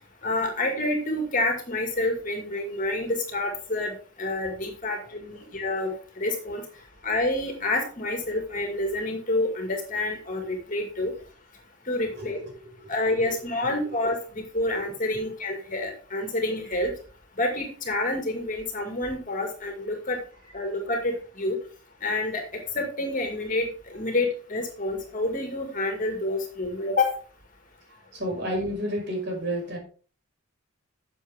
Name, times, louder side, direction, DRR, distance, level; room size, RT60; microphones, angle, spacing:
voice 1, 0.2-6.6 7.0-11.1 11.9-12.4 12.9-14.2 14.5-16.9 17.4-20.2 20.5-21.6 22.0-22.4 22.7-23.7 23.9-27.2, left 2 dB, 35° left, 3 dB, 2.1 m, -28 dB
voice 2, 12.1-12.9 13.2-13.7 15.1-15.2 27.9-29.8, equal, 50° right, 0 dB, 5.1 m, -32 dB
11.0 x 7.2 x 3.6 m, 0.38 s
head